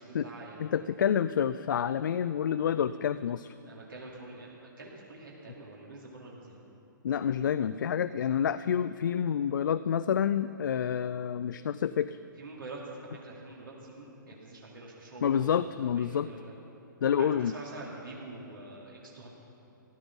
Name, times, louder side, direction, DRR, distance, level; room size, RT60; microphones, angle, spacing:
voice 1, 0.0-0.7 3.6-6.7 12.4-12.8 13.1-15.5 15.8-16.5 17.2-19.3, right 2 dB, 75° right, -3 dB, 2.5 m, -46 dB
voice 2, 0.6-3.5 7.0-12.2 15.2-16.3 17.0-17.5, left 8 dB, 65° left, 13 dB, 0.4 m, -28 dB
15.0 x 11.5 x 6.0 m, 2.8 s
figure-of-eight pair, 120°, 11 cm